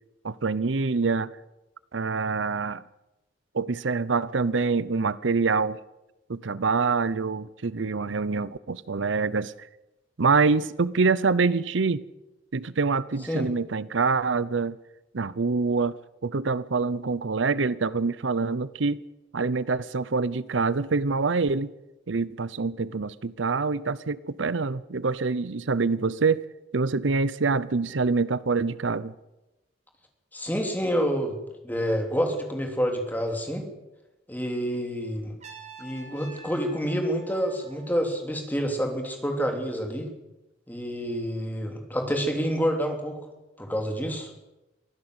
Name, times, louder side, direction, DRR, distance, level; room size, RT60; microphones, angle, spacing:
voice 1, 0.2-1.3 1.9-2.8 3.5-5.8 6.3-9.7 10.2-12.0 12.5-14.8 15.1-16.0 16.2-19.0 19.3-21.7 22.1-26.5 26.7-29.1, right 4 dB, 75° right, 0.7 m, -25 dB
voice 2, 30.3-31.4 31.6-33.7 34.3-35.3 35.8-40.1 40.7-43.2 43.6-44.3, equal, 10° left, 3.3 m, -28 dB
Trumpet, 35.4-38.4, right 3 dB, 35° right, 4.4 m, -47 dB
23.5 x 16.0 x 8.0 m
head